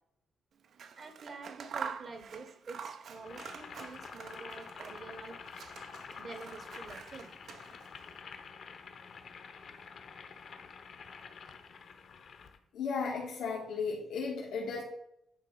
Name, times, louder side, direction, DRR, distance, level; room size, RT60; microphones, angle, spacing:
Scissors, 0.6-5.2 5.4-8.0, right 6 dB, 60° right, 0.6 m, -46 dB
voice 1, 1.0-5.4 6.2-7.3, right 4 dB, 45° right, 7 dB, 1.1 m, -47 dB
Boiling, 3.2-12.6, left 5 dB, 55° left, 1.0 m, -48 dB
voice 2, 12.7-14.8, left 5 dB, 90° left, -5 dB, 1.7 m, -35 dB
9.7 x 4.2 x 5.3 m, 0.76 s
cardioid pair, 135°, 0 cm